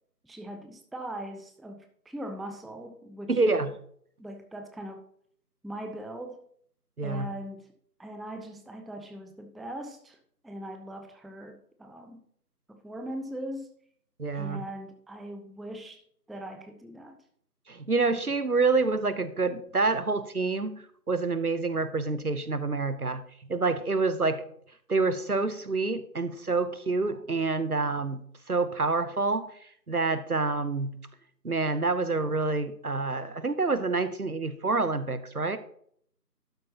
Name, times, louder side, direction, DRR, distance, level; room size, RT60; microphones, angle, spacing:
voice 1, 0.2-3.4 4.2-5.0 5.6-6.4 7.0-7.7 8.0-10.2 10.4-12.2 12.7-13.7 14.3-16.0 16.3-17.2, right 1 dB, ahead, 5 dB, 0.5 m, -40 dB
voice 2, 3.3-3.7 7.0-7.3 14.2-14.6 17.7-23.2 23.5-24.4 24.9-28.2 28.5-29.4 29.9-30.9 31.4-35.6, right 3 dB, 60° right, 13 dB, 0.8 m, -27 dB
12.0 x 8.3 x 2.9 m, 0.64 s
figure-of-eight pair, 175°, 50 cm